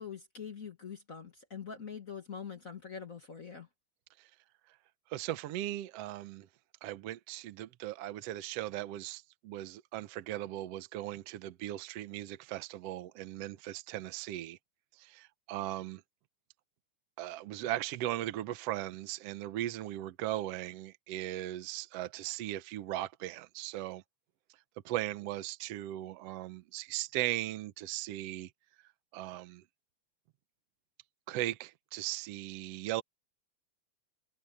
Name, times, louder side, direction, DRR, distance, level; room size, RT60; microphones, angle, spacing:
voice 1, 0.0-3.7, left 6 dB, 40° left, 1.2 m, -44 dB
voice 2, 5.1-6.5 6.8-14.6 14.9-16.0 17.2-24.0 24.8-28.5 29.1-29.6 31.3-33.0, right 14 dB, 70° right, 1.6 m, -38 dB
omnidirectional pair, 3.6 m